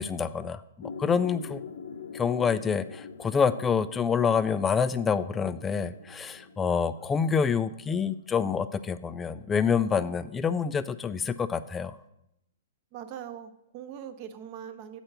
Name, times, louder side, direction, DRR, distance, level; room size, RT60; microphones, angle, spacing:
voice 1, 0.0-1.6 2.1-12.0, left 6 dB, 15° left, 12 dB, 0.3 m, -27 dB
sound 1, 0.8-8.5, left 5 dB, 75° left, 0.8 m, -44 dB
voice 2, 12.9-15.0, right 9 dB, 40° right, 8 dB, 0.7 m, -41 dB
8.0 x 4.4 x 6.6 m, 0.81 s
hypercardioid pair, 130°, 0 cm